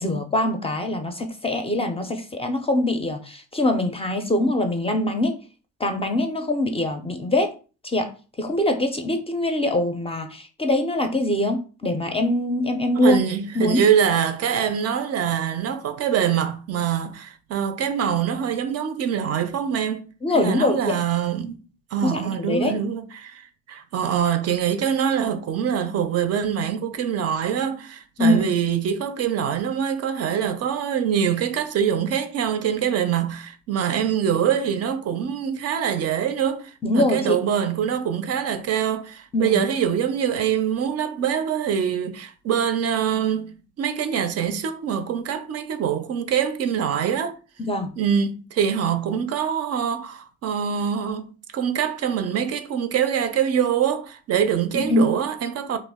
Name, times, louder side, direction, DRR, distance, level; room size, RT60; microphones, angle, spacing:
voice 1, 0.0-5.3 5.8-7.5 7.8-8.1 8.4-13.2 13.6-13.8 20.2-21.0 22.0-22.7 28.2-28.5 36.8-37.4 39.3-39.6 47.6-47.9 54.7-55.1, left 1 dB, 20° left, 0.4 m, -23 dB
voice 2, 13.0-20.1 20.3-21.6 21.9-43.5 43.8-47.4 48.0-55.8, right 8 dB, 55° right, 0.4 m, -24 dB
2.3 x 2.0 x 3.5 m
cardioid pair, 90°, 30 cm